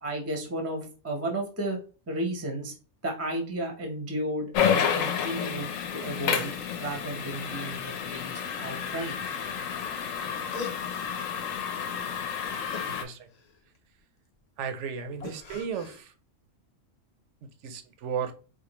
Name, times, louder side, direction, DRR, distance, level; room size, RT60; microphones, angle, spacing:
voice 1, 0.0-1.8 2.1-2.7 3.0-6.5 6.8-9.3, right 1 dB, 15° right, 0.6 m, -33 dB
sound 1, 4.5-13.0, left 8 dB, 85° left, 1.0 m, -30 dB
sound 2, 10.5-11.5 12.7-13.8 15.2-16.0, left 5 dB, 55° left, 0.4 m, -42 dB
voice 2, 12.9-13.3 14.6-16.1 17.6-18.3, right 7 dB, 75° right, 0.9 m, -34 dB
4.3 x 2.5 x 2.9 m
omnidirectional pair, 1.3 m